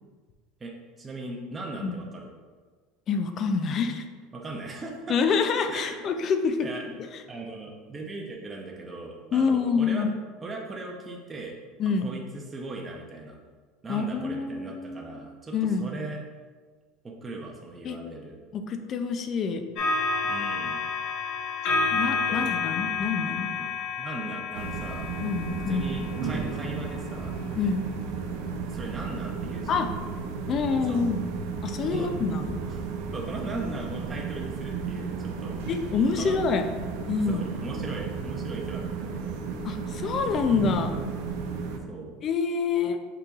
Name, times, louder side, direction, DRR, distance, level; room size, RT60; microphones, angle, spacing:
voice 1, 1.0-2.3 4.3-5.2 5.7-6.0 6.6-6.9 7.3-10.1 10.4-11.6 12.0-13.4 13.8-16.2 17.0-18.4 20.2-20.8 22.3-22.5 24.0-25.1 25.7-27.3 28.7-29.7 30.9-31.0 31.9-32.1 32.7-32.8 33.1-35.6 36.1-36.3 37.3-39.4 41.9-42.1, right 2 dB, 15° right, -1 dB, 0.6 m, -38 dB
voice 2, 3.1-4.0 5.1-6.7 9.3-10.1 11.8-12.1 13.9-15.1 15.5-15.9 17.8-18.0 18.5-19.6 21.9-23.5 25.2-25.9 27.6-27.8 29.7-29.9 30.5-31.2 31.6-32.6 35.7-36.7 37.1-37.5 39.6-40.9 42.2-43.0, left 5 dB, 35° left, 7 dB, 0.4 m, -26 dB
sound 1, 19.8-27.2 28.0-28.2, left 4 dB, 55° left, 0.9 m, -30 dB
sound 2, 24.5-41.8, right 5 dB, 75° right, 0.5 m, -34 dB
5.4 x 3.9 x 2.4 m, 1.5 s
supercardioid pair, 145°, 0 cm